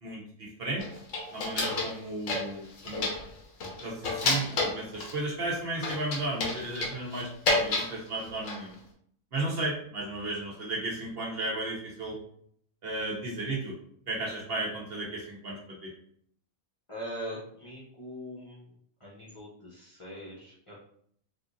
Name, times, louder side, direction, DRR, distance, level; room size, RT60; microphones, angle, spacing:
voice 1, 0.0-0.8 1.3-3.1 3.8-8.7 9.3-12.2 12.8-13.7 14.1-15.9, right 2 dB, 50° right, -3 dB, 1.0 m, -34 dB
sound 1, 0.8-2.0 2.3-3.3 3.6-5.2 5.8-7.9 8.2-8.7, left 3 dB, 75° left, 1.2 m, -30 dB
voice 2, 16.9-18.7 19.0-20.8, equal, 30° left, -7 dB, 0.7 m, -42 dB
4.2 x 2.5 x 2.6 m, 0.65 s
omnidirectional pair, 1.4 m